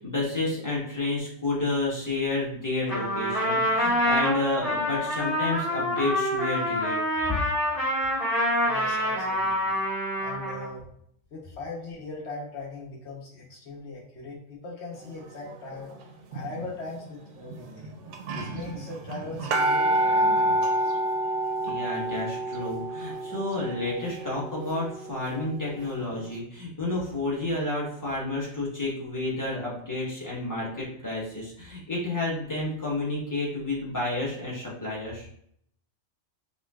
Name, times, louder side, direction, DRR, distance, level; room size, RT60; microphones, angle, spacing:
voice 1, 0.0-7.0 7.3-7.4 21.6-35.3, left 2 dB, 15° left, -5 dB, 1.0 m, -30 dB
Trumpet, 2.9-10.7, equal, 45° left, 1.7 m, -26 dB
voice 2, 8.6-9.8 10.1-10.8 11.3-15.9 16.3-17.9 18.3-20.7, left 3 dB, 60° left, -3 dB, 1.2 m, -40 dB
sound 1, 16.3-16.7 17.5-17.6 17.8-17.9 18.1-25.8 26.2-26.3, right 1 dB, 75° right, 0.9 m, -28 dB
4.9 x 2.2 x 2.3 m, 0.68 s
omnidirectional pair, 1.3 m